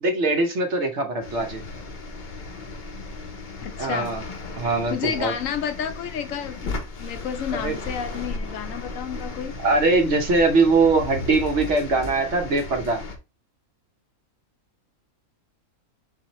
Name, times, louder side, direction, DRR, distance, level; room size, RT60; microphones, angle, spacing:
voice 1, 0.0-1.6 3.8-4.2 4.6-5.3 7.5-7.8 9.6-13.0, right 3 dB, 55° right, 1.1 m, -22 dB
sound 1, 1.2-13.2, left 3 dB, 45° left, 0.7 m, -35 dB
voice 2, 3.6-4.2 4.9-9.6, left 8 dB, 70° left, 0.9 m, -31 dB
4.3 x 4.1 x 3.0 m
omnidirectional pair, 1.5 m